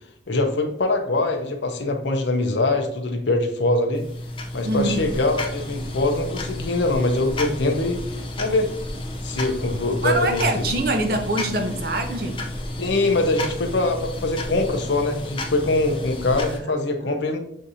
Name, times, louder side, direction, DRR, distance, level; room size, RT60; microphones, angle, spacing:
voice 1, 0.3-4.0 4.5-8.7 9.2-10.6 12.8-17.4, left 2 dB, 70° left, 0.7 m, -23 dB
sound 1, 3.9-16.6, left 1 dB, 25° left, 0.6 m, -32 dB
voice 2, 4.6-5.1 10.0-12.4 16.6-16.7 17.0-17.2, right 1 dB, 50° right, 0.6 m, -24 dB
6.4 x 2.7 x 2.7 m
head